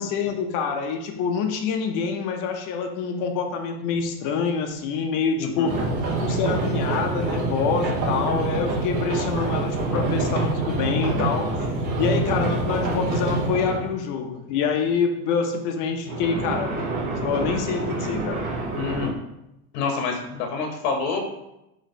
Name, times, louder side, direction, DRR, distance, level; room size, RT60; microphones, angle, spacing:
voice 1, 0.0-5.7 6.2-11.5 12.0-18.4, left 6 dB, 45° left, 4 dB, 0.7 m, -26 dB
voice 2, 5.4-5.7 18.7-19.1 19.7-21.2, left 5 dB, 60° left, 3 dB, 1.0 m, -27 dB
sound 1, 5.7-13.9 16.1-19.1, right 2 dB, 40° right, 1.1 m, -26 dB
3.8 x 3.0 x 4.3 m, 0.88 s
supercardioid pair, 145°, 45 cm